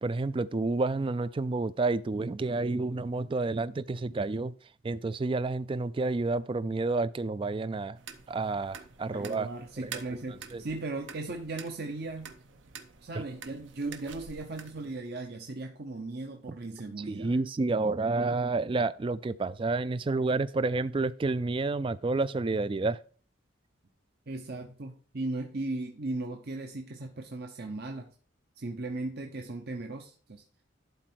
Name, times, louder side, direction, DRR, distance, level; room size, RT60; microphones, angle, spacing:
voice 1, 0.0-4.5 4.8-8.0 8.3-9.5 9.8-9.9 10.5-10.6 17.0-23.0, right 3 dB, 25° right, 0.3 m, -29 dB
sound 1, 8.0-15.0, right 6 dB, 70° right, 1.0 m, -48 dB
voice 2, 9.1-12.4 13.0-17.4 24.3-28.1 28.6-30.4, right 2 dB, 50° right, 0.8 m, -37 dB
11.5 x 4.2 x 4.5 m
head